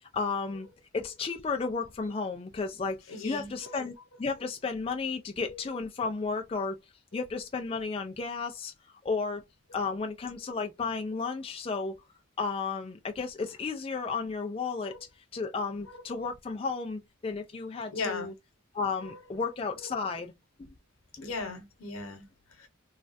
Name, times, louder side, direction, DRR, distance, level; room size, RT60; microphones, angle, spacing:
voice 1, 0.1-0.7 0.9-8.7 9.0-9.4 9.7-11.9 12.4-14.9 15.3-18.3 18.7-20.3 20.6-20.7 21.2-21.3, left 4 dB, 25° left, 0.3 m, -33 dB
voice 2, 3.1-3.8 5.5-5.6 7.1-7.2 14.8-15.0 17.9-18.3 19.0-19.1 19.8-19.9 21.2-22.7, left 3 dB, 85° left, 1.0 m, -38 dB
3.2 x 2.3 x 2.5 m
head